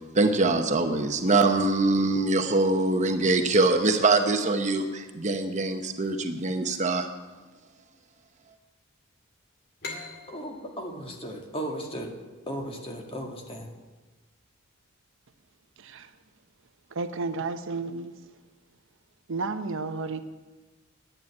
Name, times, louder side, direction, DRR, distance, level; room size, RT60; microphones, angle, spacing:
voice 1, 0.1-7.1, right 3 dB, 35° right, 0.9 m, -23 dB
sound 1, 9.8-13.2, left 3 dB, 50° left, 2.2 m, -43 dB
voice 2, 10.3-12.1 12.5-13.7, right 1 dB, 25° left, 2.0 m, -36 dB
voice 3, 15.8-16.1 16.9-18.1 19.3-20.2, right 3 dB, 60° right, 0.7 m, -32 dB
10.5 x 9.0 x 9.7 m
head